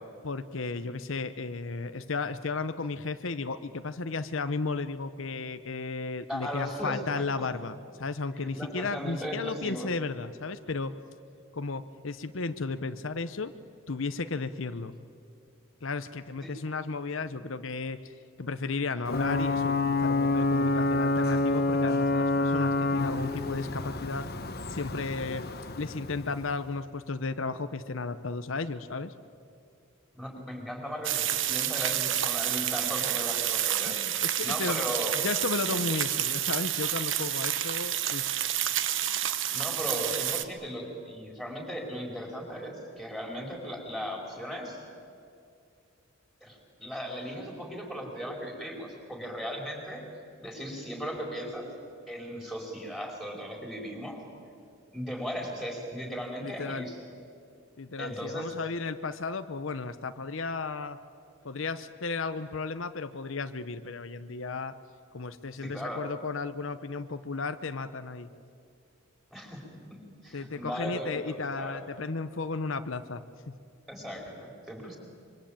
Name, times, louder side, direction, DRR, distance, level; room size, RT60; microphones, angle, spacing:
voice 1, 0.2-10.9 11.5-13.5 13.9-14.9 15.8-18.1 18.4-24.3 24.7-25.5 25.8-29.1 33.9-34.8 35.2-38.3 56.4-56.9 57.8-61.0 61.4-64.8 65.1-68.3 70.3-73.6, left 3 dB, 70° left, 10 dB, 0.8 m, -34 dB
voice 2, 6.3-7.0 7.4-7.5 8.5-9.9 16.4-16.5 30.1-34.0 34.4-35.2 39.5-44.8 46.4-50.0 50.4-51.7 52.1-54.2 54.9-57.0 58.0-58.5 65.5-66.0 69.3-69.6 70.2-71.8 73.9-75.0, equal, ahead, 1 dB, 4.8 m, -37 dB
Ocean / Boat Water vehicle / Alarm, 19.1-26.6, left 2 dB, 50° left, 1.4 m, -28 dB
sound 1, 31.0-40.4, right 11 dB, 65° right, 1.2 m, -29 dB
25.5 x 24.0 x 8.9 m, 2.4 s
head